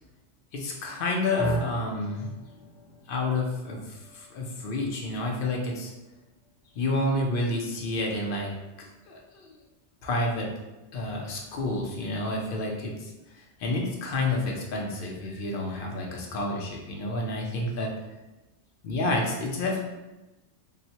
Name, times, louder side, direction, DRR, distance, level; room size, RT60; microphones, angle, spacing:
voice 1, 0.5-2.3 3.1-5.9 6.8-8.5 8.8-9.6 10.0-10.5 10.9-13.1 13.6-17.9 18.8-19.8, left 2 dB, 60° left, 0 dB, 0.6 m, -29 dB
sound 1, 1.4-9.6, equal, 80° left, 0.9 m, -38 dB
3.8 x 2.1 x 2.8 m, 1.1 s
omnidirectional pair, 1.2 m